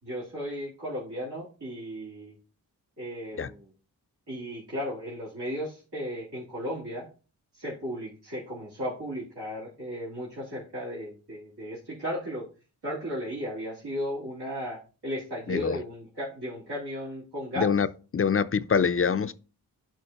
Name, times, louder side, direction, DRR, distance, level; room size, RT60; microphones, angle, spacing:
voice 1, 0.0-2.4 3.0-3.7 4.3-7.1 7.5-12.5 12.8-17.7, equal, 80° right, 3.3 m, -35 dB
voice 2, 15.5-15.8 17.6-17.9 18.1-19.3, left 6 dB, 35° left, 0.5 m, -24 dB
11.0 x 4.4 x 2.9 m
cardioid pair, 45°, 40 cm